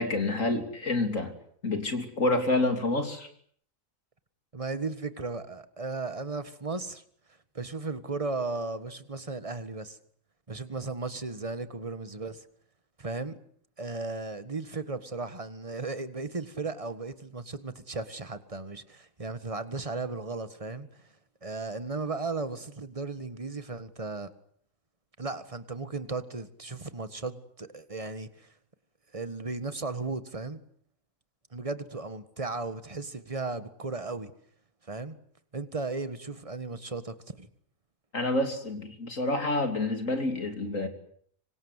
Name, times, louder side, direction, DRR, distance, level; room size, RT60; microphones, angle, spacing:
voice 1, 0.0-1.3 1.6-3.3 38.1-40.9, left 2 dB, 65° left, 3.7 m, -28 dB
voice 2, 4.5-7.0 7.5-10.0 10.5-12.4 13.0-13.4 13.8-21.0 21.4-24.3 25.2-28.5 29.1-30.6 31.5-34.3 34.9-35.2 35.5-37.5, right 3 dB, 25° right, 1.7 m, -35 dB
26.5 x 25.0 x 8.3 m
omnidirectional pair, 1.5 m